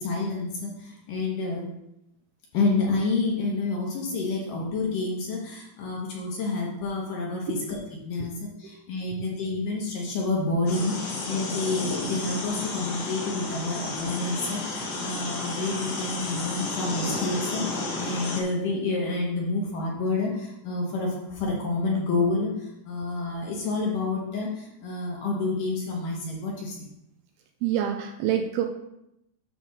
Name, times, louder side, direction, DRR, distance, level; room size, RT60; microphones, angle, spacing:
voice 1, 0.0-1.6 2.5-7.8 8.1-8.3 8.6-26.9, left 3 dB, 65° left, -2 dB, 2.6 m, -29 dB
sound 1, 10.7-18.4, left 3 dB, 85° left, 1.3 m, -32 dB
voice 2, 27.6-28.7, right 10 dB, 80° right, 4 dB, 2.4 m, -26 dB
10.5 x 3.5 x 6.4 m, 0.84 s
omnidirectional pair, 4.8 m